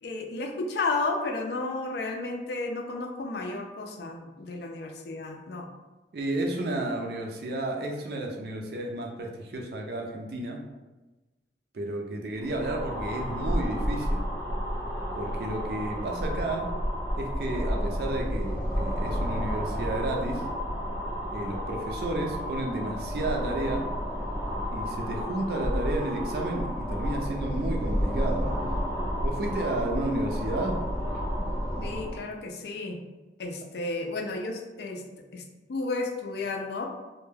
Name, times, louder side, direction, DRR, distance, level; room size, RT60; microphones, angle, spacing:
voice 1, 0.0-5.7 25.1-25.6 31.8-33.0 33.4-35.0 35.3-35.4 35.7-36.8, left 3 dB, 70° left, 2 dB, 0.4 m, -32 dB
voice 2, 6.1-10.6 11.7-14.2 15.2-16.7 17.2-20.4 21.3-23.9 24.7-28.5 29.2-30.8, right 1 dB, 60° right, 1 dB, 0.4 m, -32 dB
sound 1, 12.4-32.2, equal, 5° left, 0.7 m, -31 dB
2.2 x 2.1 x 3.2 m, 1.1 s
head